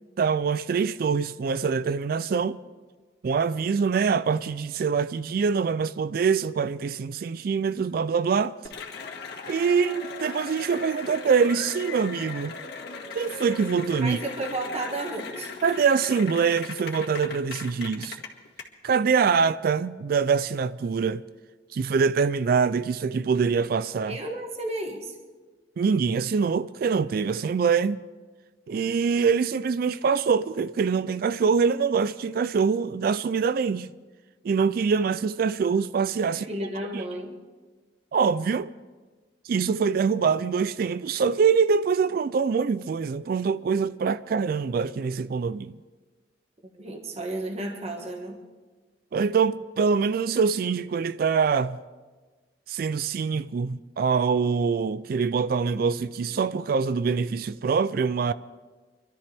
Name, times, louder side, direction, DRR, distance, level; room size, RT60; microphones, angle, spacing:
voice 1, 0.2-2.6 3.2-8.5 9.5-12.6 13.1-14.2 15.6-18.2 18.8-21.2 21.7-24.2 25.8-28.0 28.7-33.9 34.4-36.5 36.9-37.0 38.1-38.7 39.5-45.7 49.1-51.8 52.7-58.3, right 5 dB, 55° right, 0.3 m, -24 dB
Cheering / Applause, 8.6-18.6, left 4 dB, 60° left, 2.1 m, -38 dB
voice 2, 14.0-15.5 24.1-25.2 36.2-37.4 46.7-48.4, right 1 dB, 35° right, 1.7 m, -33 dB
25.5 x 13.0 x 3.5 m
head